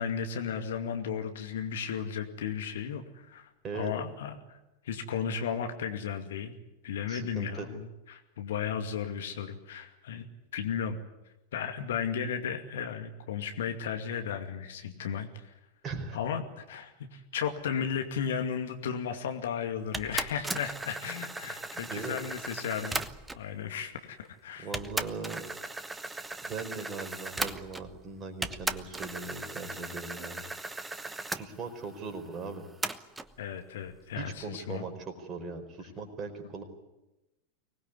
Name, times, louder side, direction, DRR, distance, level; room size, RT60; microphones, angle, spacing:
voice 1, 0.0-4.6 4.8-6.5 6.8-10.3 10.5-11.0 11.5-15.6 16.1-23.0 23.3-24.7 33.4-34.8, left 7 dB, 60° left, 6 dB, 2.4 m, -35 dB
voice 2, 7.1-7.7 15.8-16.2 21.7-22.2 24.6-25.4 26.4-30.4 31.3-32.7 34.2-36.6, right 4 dB, 25° right, 4 dB, 4.8 m, -39 dB
sound 1, 19.9-23.5 24.2-24.3 24.7-28.0 28.4-31.4 32.8-33.3, right 2 dB, 10° right, 1.1 m, -37 dB
24.5 x 19.5 x 9.8 m, 0.97 s
figure-of-eight pair, 90°, 0 cm